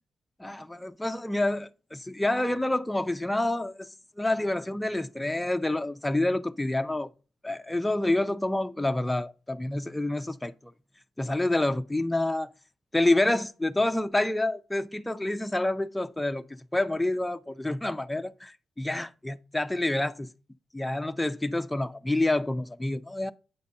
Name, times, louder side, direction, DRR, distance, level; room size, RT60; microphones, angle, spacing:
voice 1, 0.4-3.9 4.2-7.1 7.4-10.7 11.2-12.5 12.9-16.4 16.7-20.3 20.7-23.3, left 2 dB, 10° left, 0.5 m, -28 dB
8.7 x 4.0 x 5.2 m
cardioid pair, 70°, 0 cm